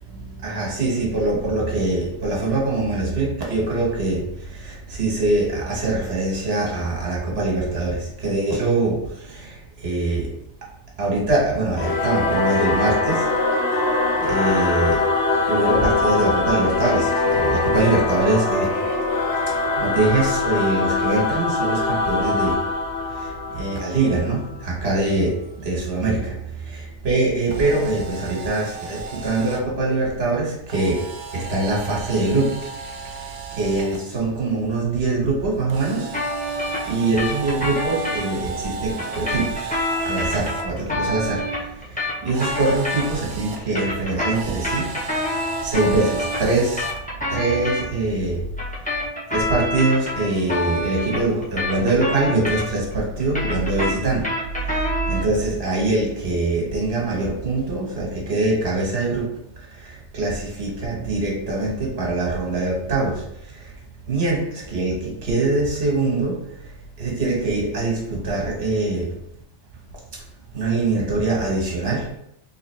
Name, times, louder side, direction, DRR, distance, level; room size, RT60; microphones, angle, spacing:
voice 1, 0.1-10.3 11.0-13.3 13.8-15.0 15.5-18.8 19.4-22.6 23.1-36.1 36.5-44.9 45.3-46.9 47.3-48.5 48.8-49.0 49.3-54.3 54.6-59.3 59.6-63.7 64.1-66.7 67.0-69.1 70.1-70.2 70.5-72.2, right 2 dB, 55° right, -2 dB, 1.4 m, -23 dB
Singing / Musical instrument, 11.7-24.6, left 3 dB, 75° left, 1.2 m, -22 dB
Camera, 27.4-29.6 30.7-34.0 35.7-40.6 42.3-43.6 44.3-47.0, right 5 dB, 80° right, 1.0 m, -35 dB
sound 1, 36.1-38.2 39.0-43.3 43.6-47.8 48.6-52.9 53.2-55.3, left 1 dB, 10° left, 0.7 m, -27 dB
3.8 x 3.1 x 3.2 m, 0.76 s
omnidirectional pair, 1.3 m